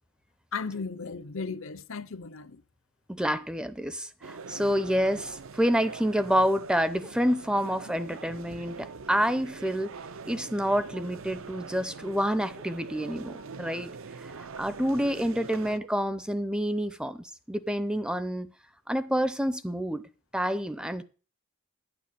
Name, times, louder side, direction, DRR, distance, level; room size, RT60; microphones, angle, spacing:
voice 1, 0.5-2.6, left 4 dB, 65° left, 0.7 m, -36 dB
voice 2, 3.1-10.0 10.3-13.9 14.2-18.5 18.9-20.0 20.3-21.0, equal, 5° right, 0.5 m, -28 dB
sound 1, 4.2-15.8, right 5 dB, 65° right, 0.6 m, -43 dB
9.7 x 8.7 x 6.9 m
head